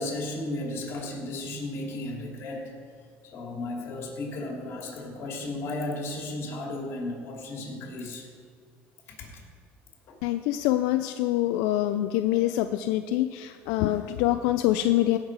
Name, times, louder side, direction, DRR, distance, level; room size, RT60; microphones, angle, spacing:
voice 1, 0.0-2.7 3.2-8.3 9.1-9.4 10.1-10.2, left 2 dB, 55° left, 0 dB, 2.9 m, -34 dB
voice 2, 10.2-15.2, left 14 dB, 90° left, 8 dB, 0.4 m, -25 dB
16.5 x 6.6 x 4.7 m, 2.2 s
cardioid pair, 130°, 5 cm